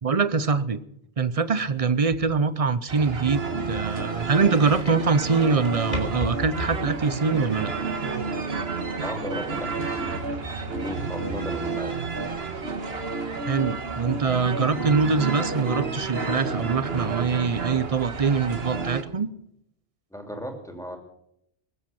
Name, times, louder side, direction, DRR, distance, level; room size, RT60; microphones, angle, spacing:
voice 1, 0.0-0.8 1.2-7.7 13.5-19.3, right 5 dB, 40° right, 15 dB, 0.7 m, -24 dB
sound 1, 1.3-7.5, left 1 dB, 40° left, 3.4 m, -38 dB
sound 2, 2.9-19.0, right 4 dB, 70° right, 1.7 m, -30 dB
voice 2, 9.0-10.2 10.7-12.0 20.1-21.0, equal, 5° left, 3 dB, 2.6 m, -35 dB
20.5 x 7.9 x 7.0 m, 0.76 s
omnidirectional pair, 1.1 m